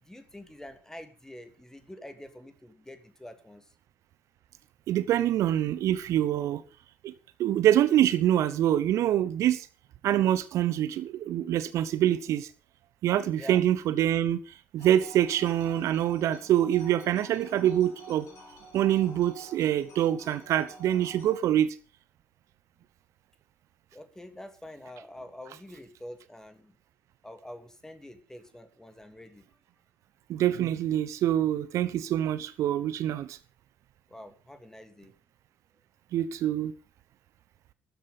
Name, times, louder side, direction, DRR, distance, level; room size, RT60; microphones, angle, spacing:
voice 1, 0.0-3.7 13.4-13.6 23.9-26.8 27.2-29.5 34.1-35.1, left 1 dB, 10° left, 2.8 m, -46 dB
voice 2, 4.9-6.6 7.0-7.1 7.4-9.7 10.0-12.5 13.0-18.3 18.7-21.8 30.3-33.4 36.1-36.7, right 11 dB, 55° right, 0.9 m, -25 dB
sound 1, 14.8-21.4, right 1 dB, 55° left, 6.6 m, -49 dB
14.0 x 13.0 x 5.2 m
figure-of-eight pair, 50°, 6 cm